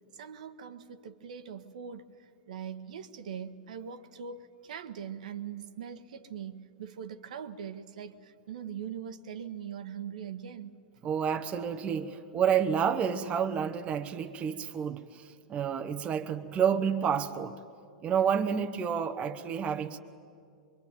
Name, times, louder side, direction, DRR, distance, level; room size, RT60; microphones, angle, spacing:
voice 1, 0.1-10.7, right 8 dB, 60° right, 1.3 m, -41 dB
voice 2, 11.0-17.6 18.0-20.0, right 7 dB, 25° right, 1.0 m, -29 dB
25.5 x 23.0 x 9.3 m
figure-of-eight pair, 95°, 5 cm